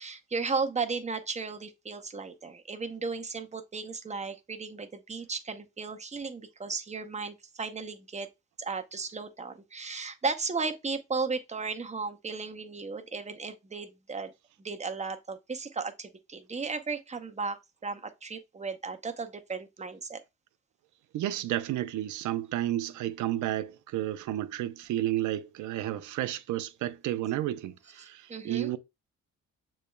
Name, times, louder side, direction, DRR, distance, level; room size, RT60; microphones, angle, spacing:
voice 1, 0.0-8.3 8.6-14.3 14.6-20.2 28.0-28.7, right 4 dB, 25° right, 0.7 m, -35 dB
voice 2, 21.1-28.8, right 13 dB, 75° right, 0.5 m, -32 dB
6.6 x 3.2 x 2.2 m
cardioid pair, 90°, 30 cm